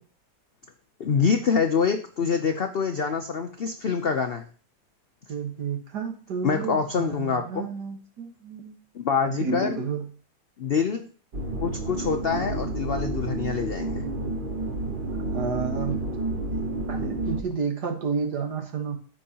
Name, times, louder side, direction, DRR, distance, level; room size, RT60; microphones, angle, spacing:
voice 1, 1.0-4.4 6.4-7.7 8.9-9.8 10.6-11.0 11.6-14.1, left 6 dB, 70° left, 6 dB, 0.5 m, -25 dB
voice 2, 5.3-8.7 9.3-10.0 15.2-16.0 16.5-16.6 16.9-19.0, right 5 dB, 70° right, 4 dB, 1.9 m, -31 dB
sound 1, 11.3-17.4, right 2 dB, 45° right, 0.7 m, -30 dB
14.0 x 5.4 x 2.9 m, 0.43 s
omnidirectional pair, 1.8 m